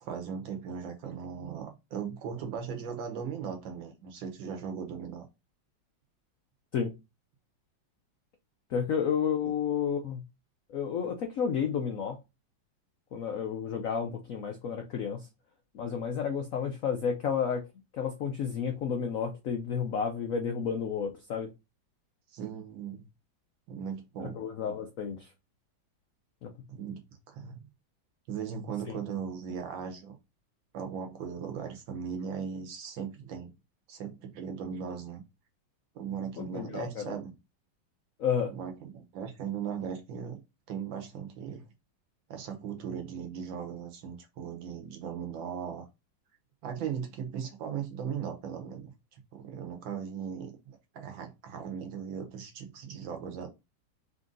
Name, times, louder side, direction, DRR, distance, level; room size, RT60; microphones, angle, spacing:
voice 1, 0.0-5.3 9.4-9.5 22.3-23.0 23.7-24.4 26.7-27.0 27.3-27.7 28.3-30.2 30.7-33.5 33.9-35.2 35.9-37.3 38.5-40.4 40.7-41.6 42.3-45.8 46.6-48.9 49.3-53.5, right 7 dB, 70° right, 1.6 m, -38 dB
voice 2, 8.7-10.2 10.7-12.2 13.1-15.3 15.7-17.6 17.9-21.5 24.2-25.3 26.4-26.5 28.9-29.0 36.4-37.1 38.2-38.5, left 7 dB, 80° left, 0.7 m, -31 dB
4.1 x 2.6 x 3.7 m
omnidirectional pair, 2.2 m